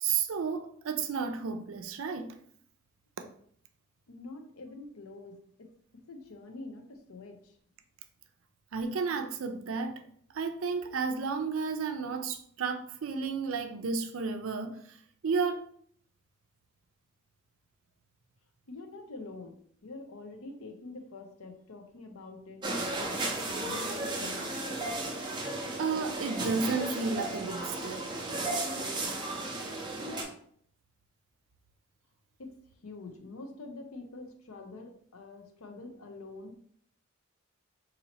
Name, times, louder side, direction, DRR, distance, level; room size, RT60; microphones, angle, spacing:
voice 1, 0.0-2.4 8.7-10.0 10.3-15.6 25.8-28.1, right 5 dB, 70° right, 0.4 m, -32 dB
voice 2, 4.1-5.4 6.0-7.6 18.7-24.5 32.4-32.5 32.8-36.6, left 3 dB, 80° left, 0.6 m, -46 dB
sound 1, 22.6-30.2, right 2 dB, 20° right, 0.6 m, -34 dB
2.9 x 2.7 x 4.0 m
head